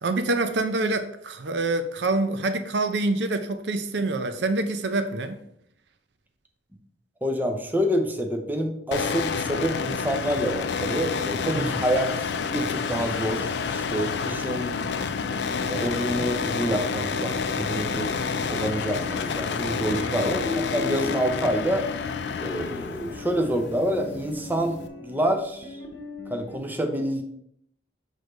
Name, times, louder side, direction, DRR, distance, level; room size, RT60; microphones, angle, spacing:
voice 1, 0.0-5.4 11.5-11.8 19.9-20.3, right 2 dB, 70° right, 0.6 m, -26 dB
voice 2, 7.2-12.1 12.5-14.8 15.7-21.9 22.4-25.8 26.3-27.2, equal, 10° right, 0.6 m, -27 dB
sound 1, 8.9-24.9, left 5 dB, 70° left, 0.5 m, -29 dB
sound 2, 16.1-26.6, left 2 dB, 50° left, 1.0 m, -41 dB
6.3 x 3.3 x 5.1 m
head